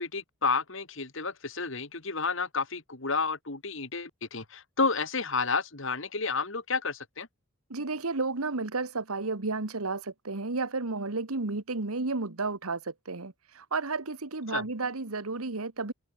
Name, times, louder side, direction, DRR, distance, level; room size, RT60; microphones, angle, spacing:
voice 1, 0.0-7.3 14.5-14.6, left 4 dB, 60° left, 2.4 m, -31 dB
voice 2, 7.7-15.9, right 3 dB, 85° right, 1.6 m, -32 dB
head